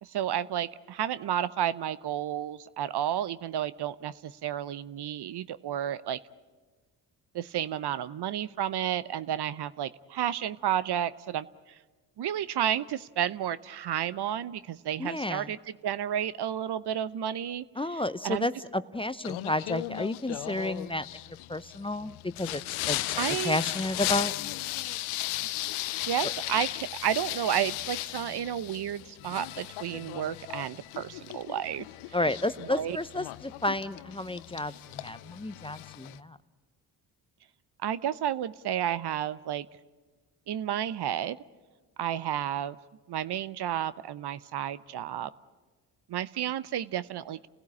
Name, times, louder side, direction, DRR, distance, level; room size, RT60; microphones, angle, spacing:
voice 1, 0.0-6.2 7.3-11.5 12.2-15.6 15.8-17.6 17.9-18.5 23.2-23.6 26.0-31.8 32.7-33.0 37.8-39.7 40.5-41.4 42.0-42.8 43.1-45.3 46.1-47.5, right 10 dB, 50° right, 17 dB, 0.8 m, -31 dB
voice 2, 15.0-15.5 17.8-21.1 21.5-22.1 22.4-22.6 22.9-23.0 23.4-24.3 32.1-36.4, left 1 dB, 10° left, 13 dB, 0.7 m, -31 dB
Singing, 19.2-36.2, left 17 dB, 75° left, 0.7 m, -36 dB
29.5 x 16.5 x 8.6 m, 1.3 s
hypercardioid pair, 50°, 50 cm